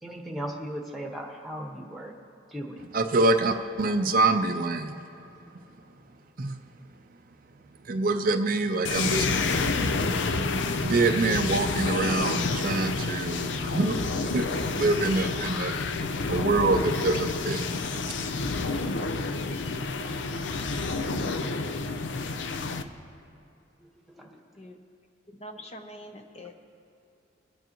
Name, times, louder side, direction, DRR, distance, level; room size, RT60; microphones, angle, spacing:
voice 1, 0.0-2.1 2.5-2.8 21.8-22.5 24.1-24.3, equal, ahead, 0 dB, 1.2 m, -38 dB
voice 2, 2.9-5.0 6.4-6.6 7.8-9.3 9.5-9.6 10.8-17.7, right 3 dB, 45° right, 6 dB, 0.5 m, -26 dB
sound 1, 8.8-22.8, left 3 dB, 70° left, 0.6 m, -29 dB
voice 3, 25.4-26.6, equal, 35° left, 4 dB, 0.7 m, -44 dB
23.0 x 9.1 x 3.0 m, 2.7 s
head